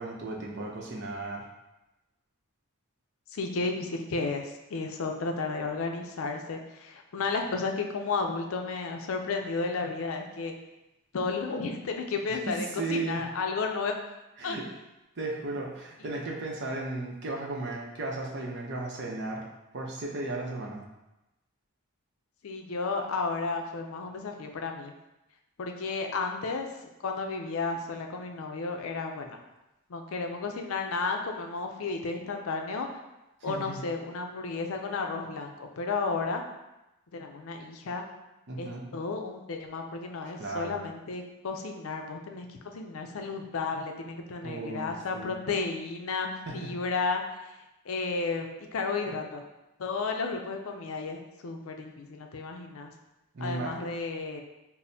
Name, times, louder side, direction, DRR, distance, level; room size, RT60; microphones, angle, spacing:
voice 1, 0.0-1.5 12.3-13.2 14.4-14.6 15.2-19.4 19.7-20.8 33.4-33.8 38.5-38.8 40.4-40.8 44.4-45.3 46.5-46.7 53.3-53.7, right 2 dB, 50° right, -1 dB, 0.6 m, -35 dB
voice 2, 3.3-10.5 11.1-14.0 14.4-14.6 22.4-24.9 25.6-26.7 27.0-29.4 29.9-32.9 33.4-36.4 37.1-38.1 38.6-47.2 47.9-49.4 49.8-52.9 53.4-54.4, left 4 dB, 65° left, 3 dB, 0.4 m, -33 dB
6.0 x 2.0 x 2.7 m, 0.97 s
head